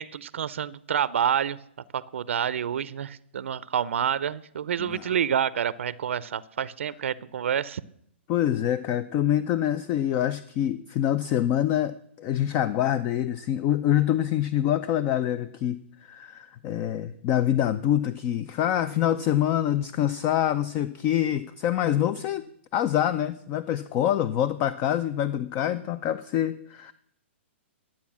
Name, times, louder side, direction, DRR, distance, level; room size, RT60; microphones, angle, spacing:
voice 1, 0.0-1.6 1.9-7.8, right 8 dB, 75° right, 18 dB, 0.5 m, -28 dB
voice 2, 4.8-5.1 8.3-22.4 22.7-26.9, left 11 dB, 30° left, 15 dB, 0.5 m, -25 dB
11.5 x 8.4 x 7.3 m, 0.72 s
hypercardioid pair, 140°, 7 cm